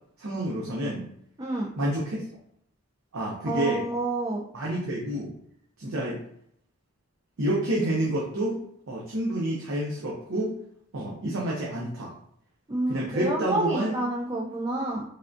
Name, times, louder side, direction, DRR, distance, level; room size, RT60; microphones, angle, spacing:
voice 1, 0.2-1.1 1.8-2.2 3.1-3.8 4.5-5.3 5.8-6.2 7.4-8.6 8.9-10.5 10.9-12.1 12.9-14.0, right 1 dB, 70° right, -4 dB, 0.6 m, -28 dB
voice 2, 1.4-1.7 3.5-4.4 12.7-15.0, right 2 dB, 15° right, -3 dB, 0.3 m, -28 dB
3.5 x 2.3 x 2.5 m, 0.70 s
head